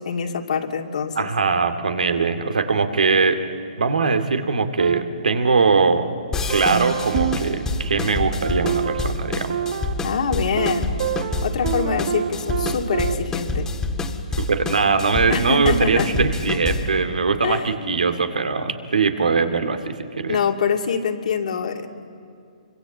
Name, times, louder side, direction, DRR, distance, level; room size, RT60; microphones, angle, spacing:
voice 1, 0.0-1.3 10.0-10.9 11.4-13.7 15.3-16.1 17.4-18.0 20.3-21.9, left 6 dB, 65° left, 3 dB, 2.4 m, -25 dB
voice 2, 1.2-3.4 3.8-6.1 6.5-9.6 14.4-20.4, right 4 dB, 85° right, 7 dB, 2.3 m, -21 dB
sound 1, 4.8-6.0 6.5-13.1, right 9 dB, 55° right, 1.1 m, -28 dB
sound 2, 6.3-17.0, left 3 dB, 10° left, 1.7 m, -27 dB
26.0 x 24.5 x 7.9 m, 2.5 s
hypercardioid pair, 140°, 4 cm